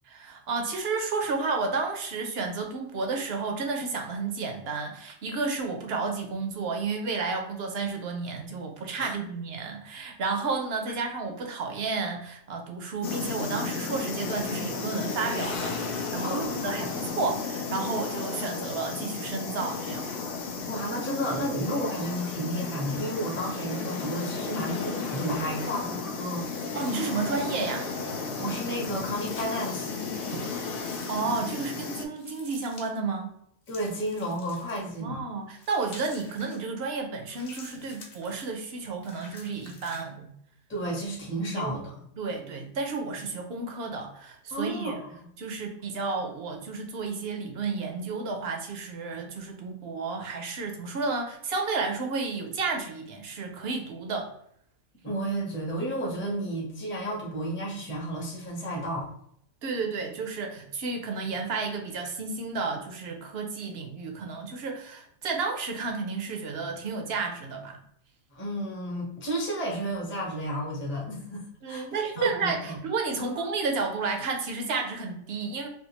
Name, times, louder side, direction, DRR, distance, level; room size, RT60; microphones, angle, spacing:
voice 1, 0.1-20.0 26.7-27.9 30.3-30.4 31.1-33.3 35.0-40.3 41.5-41.7 42.2-45.0 45.4-54.3 59.6-67.8 71.6-75.7, right 4 dB, 60° right, 3 dB, 0.7 m, -32 dB
sound 1, 13.0-32.1, left 4 dB, 70° left, 0.5 m, -34 dB
voice 2, 16.2-16.9 20.6-26.5 28.4-29.9 33.7-35.2 40.7-41.9 44.5-45.2 55.0-59.1 68.3-71.8 72.2-72.8 73.3-73.4, right 1 dB, 15° left, -2 dB, 0.5 m, -32 dB
sound 2, 26.3-27.6 28.7-29.8 30.8-31.2 32.2-32.9 33.6-35.0 35.6-36.6 37.3-38.5 39.0-40.0, left 3 dB, 50° left, 0.9 m, -49 dB
3.4 x 2.4 x 2.9 m, 0.70 s
omnidirectional pair, 1.5 m